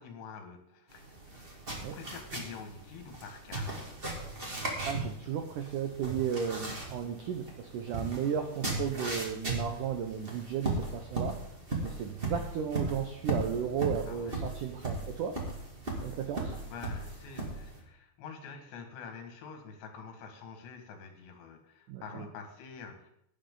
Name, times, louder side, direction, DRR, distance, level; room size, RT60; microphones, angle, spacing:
voice 1, 0.0-1.5 1.8-4.0 14.1-14.4 16.4-23.1, left 6 dB, 80° left, 4 dB, 4.1 m, -47 dB
sound 1, 0.9-17.8, right 2 dB, 20° right, 1.5 m, -37 dB
voice 2, 4.9-11.4 11.8-15.4 16.0-16.5 21.9-22.3, right 8 dB, 85° right, 6 dB, 1.8 m, -34 dB
17.0 x 10.5 x 3.9 m, 0.75 s
omnidirectional pair, 5.0 m